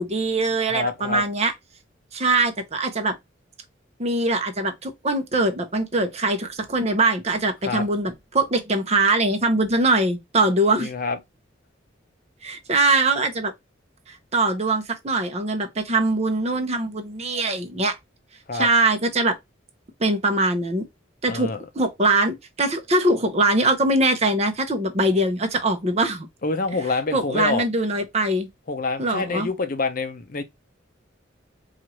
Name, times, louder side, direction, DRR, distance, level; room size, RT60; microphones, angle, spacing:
voice 1, 0.0-1.5 2.1-3.2 4.0-10.9 12.4-13.5 14.1-18.0 18.5-19.4 20.0-20.8 21.2-26.3 27.1-28.5 29.0-29.5, right 2 dB, 35° right, 0.7 m, -22 dB
voice 2, 0.7-1.2 7.6-7.9 10.8-11.2 18.5-18.7 21.3-21.6 26.4-27.6 28.7-30.4, left 3 dB, 45° left, 0.6 m, -26 dB
4.5 x 2.4 x 2.9 m
head